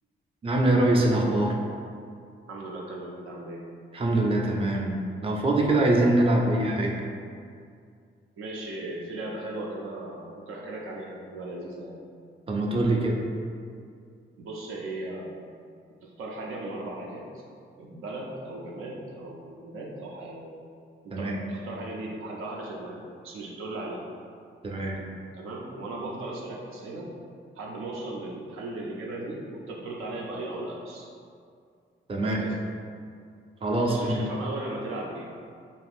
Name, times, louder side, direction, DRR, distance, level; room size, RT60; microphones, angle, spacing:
voice 1, 0.4-1.5 3.9-4.9 5.2-7.0 12.5-13.1 21.1-21.4 24.6-25.0 32.1-32.5 33.6-34.2, right 1 dB, 25° right, 0 dB, 0.5 m, -23 dB
voice 2, 2.5-3.6 8.4-12.0 14.4-15.4 16.0-17.4 17.8-20.5 21.0-24.0 25.3-27.1 27.6-31.1 32.2-32.6 33.8-35.3, right 2 dB, 80° right, -2 dB, 0.5 m, -37 dB
2.6 x 2.4 x 3.4 m, 2.3 s
cardioid pair, 60°, 21 cm